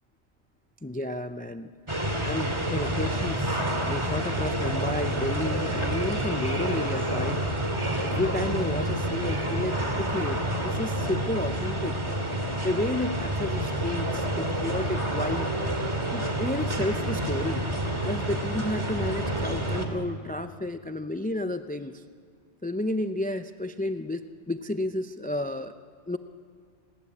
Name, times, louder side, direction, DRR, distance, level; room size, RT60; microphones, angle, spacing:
voice 1, 0.8-1.7 2.2-7.4 8.0-11.9 12.6-15.5 16.1-17.6 18.0-22.0 22.6-25.7 26.1-26.2, left 1 dB, 10° left, 9 dB, 0.5 m, -31 dB
sound 1, 1.9-19.9, right 1 dB, 25° right, 2.4 m, -28 dB
30.0 x 20.5 x 8.5 m, 2.2 s
omnidirectional pair, 1.1 m